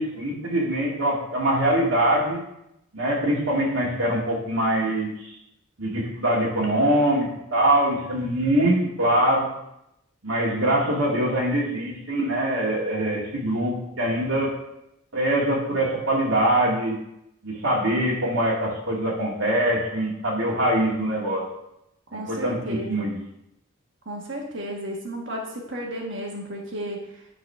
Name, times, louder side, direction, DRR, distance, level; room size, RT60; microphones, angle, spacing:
voice 1, 0.0-2.4 2.9-5.3 5.8-9.5 10.2-14.5 15.1-17.0 17.4-21.4 22.1-23.2, right 1 dB, 75° right, -3 dB, 2.0 m, -23 dB
voice 2, 22.1-23.1 24.0-27.0, equal, 60° right, 0 dB, 1.6 m, -33 dB
10.0 x 4.1 x 5.5 m, 0.84 s
head